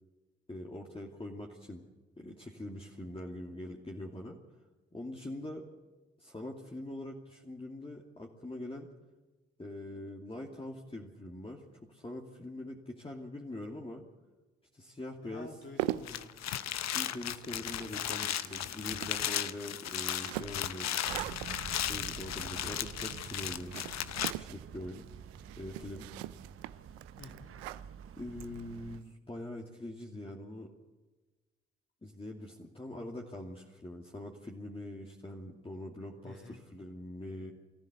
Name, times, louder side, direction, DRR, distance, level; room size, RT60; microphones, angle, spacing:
voice 1, 0.5-1.8 2.2-4.4 4.9-5.7 6.2-8.9 9.6-14.1 14.7-15.6 16.9-20.9 21.9-23.9 24.1-25.1 25.6-26.1 28.2-30.7 32.0-37.5, left 1 dB, 20° left, -2 dB, 2.6 m, -43 dB
voice 2, 15.2-16.3 17.0-17.4 27.2-27.5 36.2-36.6, left 3 dB, 40° left, 2 dB, 2.4 m, -50 dB
sound 1, 15.5-29.0, right 16 dB, 85° right, 0.6 m, -43 dB
sound 2, 15.9-24.3, left 11 dB, 60° left, 0.9 m, -36 dB
sound 3, 21.0-29.0, right 8 dB, 45° right, 0.9 m, -48 dB
23.0 x 14.5 x 8.1 m, 1.2 s
hypercardioid pair, 45°, 31 cm